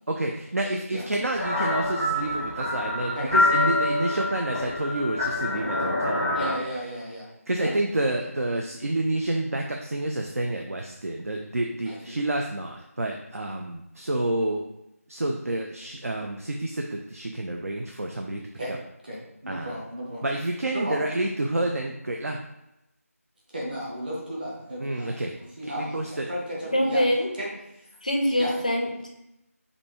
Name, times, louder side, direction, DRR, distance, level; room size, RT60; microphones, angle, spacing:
voice 1, 0.1-6.5 7.5-14.6 15.1-18.4 19.5-19.7 20.2-22.4 24.8-25.3 25.8-26.3, right 1 dB, 65° right, 2 dB, 0.5 m, -29 dB
sound 1, 1.4-6.5, left 2 dB, 10° right, 0.9 m, -26 dB
voice 2, 6.3-7.3 7.6-7.7 11.8-12.2 18.5-18.8 19.0-20.2 20.7-21.0 23.5-27.0 27.3-27.5 27.7-27.9 28.4-28.5, equal, 35° right, -5 dB, 1.1 m, -34 dB
voice 3, 26.7-27.3 28.0-29.1, left 1 dB, 30° left, 1 dB, 0.4 m, -24 dB
5.1 x 2.6 x 3.0 m, 0.87 s
figure-of-eight pair, 170°, 8 cm